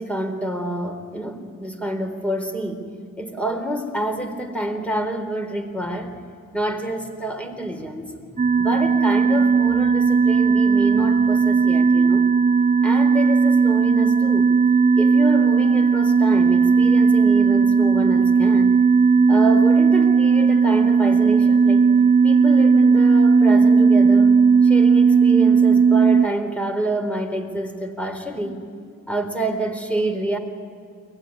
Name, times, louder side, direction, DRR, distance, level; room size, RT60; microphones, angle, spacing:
voice 1, 0.0-2.8 3.2-6.2 6.5-8.1 8.6-12.3 12.8-14.5 15.0-18.8 19.3-21.9 22.2-24.4 24.6-28.6 29.1-30.4, right 1 dB, 5° left, 6 dB, 4.2 m, -27 dB
sound 1, 8.4-26.2, right 5 dB, 20° right, 0.7 m, -16 dB
23.5 x 19.5 x 10.0 m, 2.4 s
cardioid pair, 50°, 32 cm